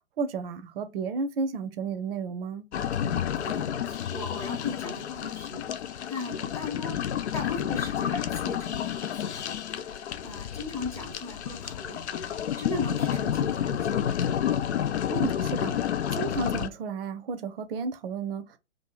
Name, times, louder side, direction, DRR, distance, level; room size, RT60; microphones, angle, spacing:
voice 1, 0.2-2.7 15.1-15.7 16.1-18.6, right 4 dB, 50° right, 0.6 m, -32 dB
sound 1, 2.7-16.7, left 9 dB, 65° left, 0.5 m, -30 dB
voice 2, 3.0-5.6 6.1-7.0 7.3-12.0 12.6-14.2, left 3 dB, 5° left, 0.8 m, -38 dB
2.7 x 2.4 x 3.7 m
figure-of-eight pair, 120°, 37 cm